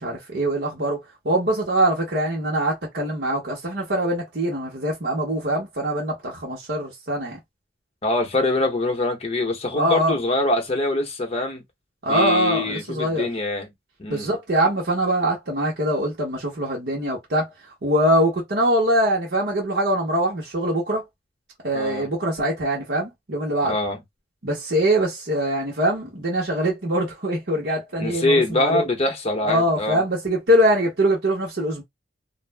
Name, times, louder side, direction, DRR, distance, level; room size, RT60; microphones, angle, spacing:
voice 1, 0.0-7.4 9.7-10.2 12.0-13.3 14.1-17.5 17.8-21.0 21.6-23.8 24.4-28.9 29.4-31.8, right 1 dB, 70° right, 1.0 m, -23 dB
voice 2, 8.0-11.6 12.1-13.7 14.0-14.3 21.7-22.1 23.6-24.0 28.0-30.0, left 2 dB, 35° left, 0.8 m, -24 dB
2.5 x 2.0 x 3.3 m
head